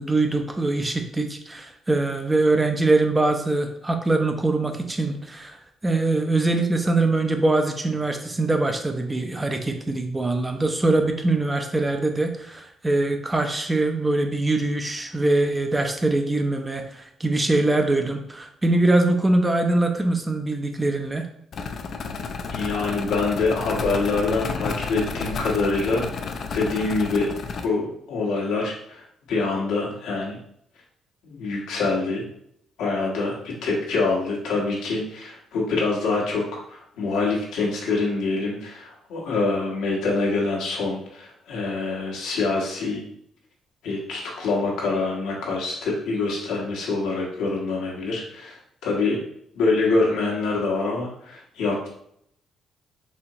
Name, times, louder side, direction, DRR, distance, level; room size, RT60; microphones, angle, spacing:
voice 1, 0.0-21.3, right 2 dB, 20° right, 5 dB, 0.5 m, -23 dB
sound 1, 21.5-27.7, left 4 dB, 55° left, 0.4 m, -31 dB
voice 2, 22.5-26.0 26.5-27.3 27.6-30.4 31.2-32.2 32.8-43.0 43.8-49.2 49.5-51.9, left 3 dB, 90° left, -3 dB, 1.1 m, -25 dB
4.2 x 2.9 x 2.7 m, 0.71 s
cardioid pair, 90°, 0 cm